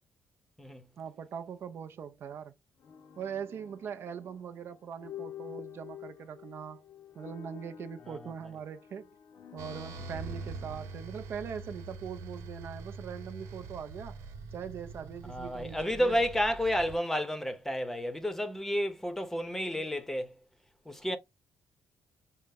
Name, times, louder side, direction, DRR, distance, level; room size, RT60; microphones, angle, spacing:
voice 1, 1.0-2.5 3.2-6.8 7.2-9.1 9.5-14.2 14.5-16.2, right 7 dB, 55° right, 0.4 m, -41 dB
sound 1, 2.8-12.9, left 10 dB, 55° left, 0.6 m, -50 dB
sound 2, 9.6-17.0, right 4 dB, 75° right, 0.9 m, -44 dB
voice 2, 15.3-20.3 20.9-21.2, equal, 5° left, 0.7 m, -31 dB
5.4 x 2.0 x 3.5 m
cardioid pair, 115°, 5 cm